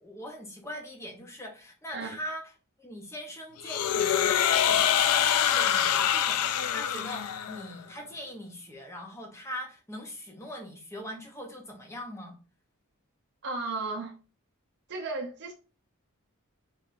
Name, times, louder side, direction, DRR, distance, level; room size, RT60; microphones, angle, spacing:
voice 1, 0.0-2.5 2.8-12.3, equal, 10° left, 0.7 m, -41 dB
sound 1, 3.6-7.7, left 9 dB, 80° left, 0.3 m, -25 dB
voice 2, 13.4-14.1 14.9-15.5, right 3 dB, 50° right, 0.6 m, -34 dB
4.7 x 3.0 x 2.6 m
head